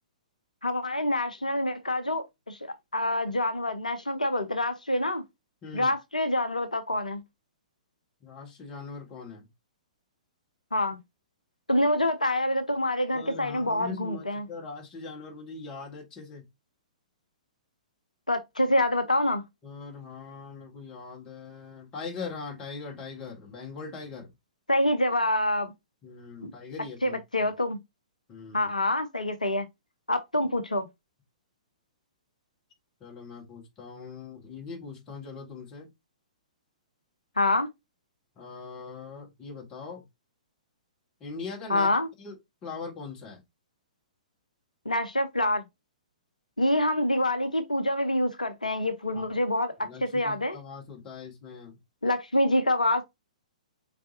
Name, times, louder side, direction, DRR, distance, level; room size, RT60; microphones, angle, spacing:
voice 1, 0.6-2.6 2.9-5.2 5.7-7.2 10.7-11.0 11.7-14.5 18.3-19.4 24.7-25.7 26.4-26.5 27.0-27.8 28.5-29.7 30.1-30.9 37.4-37.7 41.7-42.1 44.9-45.6 46.6-49.7 50.0-50.6 52.0-53.0, left 1 dB, 80° left, 0.7 m, -26 dB
voice 2, 5.6-5.9 8.2-9.5 13.1-16.4 19.6-24.3 26.0-27.5 28.3-28.7 33.0-35.9 38.4-40.0 41.2-41.9 42.2-42.4 42.6-43.4 49.1-49.3 49.8-51.8, left 4 dB, 20° left, 1.6 m, -41 dB
4.1 x 3.3 x 2.7 m
figure-of-eight pair, 115°, 4 cm